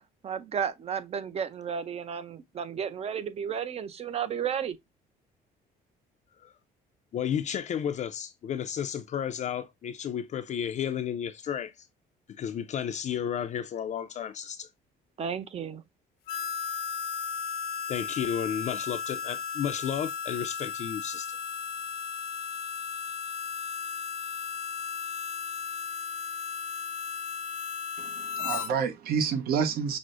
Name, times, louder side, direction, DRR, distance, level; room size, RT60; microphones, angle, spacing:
voice 1, 0.2-4.8 15.2-15.8, right 7 dB, 40° right, 0.6 m, -33 dB
voice 2, 7.1-11.9 12.3-14.7 17.9-21.4, left 9 dB, 45° left, 0.4 m, -32 dB
Harmonica, 16.3-28.7, left 6 dB, 85° left, 0.8 m, -35 dB
voice 3, 28.0-30.0, right 6 dB, 65° right, 0.8 m, -29 dB
6.0 x 2.1 x 2.5 m
cardioid pair, 110°, 17 cm